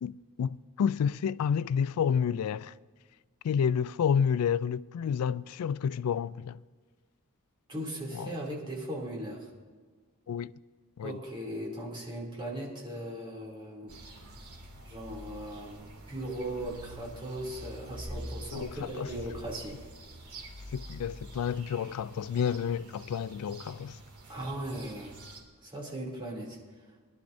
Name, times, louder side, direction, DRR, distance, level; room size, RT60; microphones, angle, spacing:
voice 1, 0.0-2.7 3.4-6.6 8.1-8.3 10.3-10.5 11.0-11.2 18.5-18.7 19.0-19.1 20.7-24.0, left 7 dB, 75° left, 0.3 m, -30 dB
voice 2, 7.7-9.5 11.0-14.0 14.9-19.8 24.3-25.1 25.6-26.9, right 1 dB, 25° right, 2.8 m, -38 dB
sound 1, 13.9-25.4, right 1 dB, 80° right, 2.2 m, -46 dB
21.0 x 11.5 x 2.6 m
head